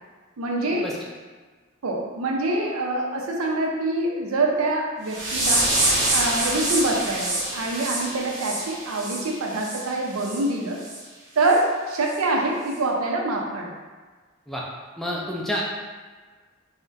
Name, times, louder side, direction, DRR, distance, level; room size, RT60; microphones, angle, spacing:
voice 1, 0.4-0.9 1.8-5.6 6.1-10.8 11.4-13.7, right 2 dB, 85° right, 0 dB, 0.5 m, -25 dB
sound 1, 5.1-9.8 10.2-10.4 10.8-11.0 11.5-11.6 12.1-12.2, right 1 dB, 55° right, 0.8 m, -26 dB
voice 2, 15.0-15.6, equal, ahead, -4 dB, 0.3 m, -28 dB
2.4 x 2.1 x 3.7 m, 1.4 s
head